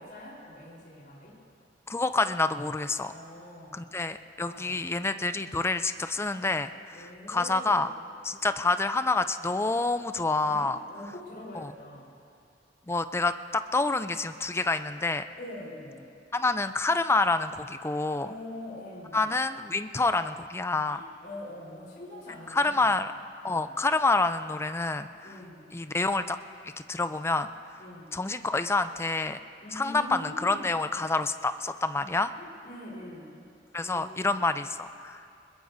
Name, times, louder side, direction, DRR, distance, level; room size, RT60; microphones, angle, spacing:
voice 1, 0.0-1.4 3.1-3.8 4.4-4.8 6.9-8.0 8.4-8.5 10.5-12.2 15.4-16.1 18.2-19.3 20.9-23.0 23.5-23.8 25.2-25.7 27.8-28.2 29.6-30.9 32.4-33.5 33.8-34.4, left 1 dB, 55° left, -4 dB, 4.1 m, -44 dB
voice 2, 1.9-3.1 3.7-7.9 8.2-10.8 11.6-11.7 12.9-15.2 16.3-18.3 19.1-21.0 22.5-23.1 23.4-25.1 25.7-26.4 26.9-27.5 28.1-29.4 29.7-32.3 33.7-35.2, left 3 dB, 15° left, 10 dB, 0.4 m, -27 dB
21.5 x 21.0 x 2.7 m, 2.5 s
head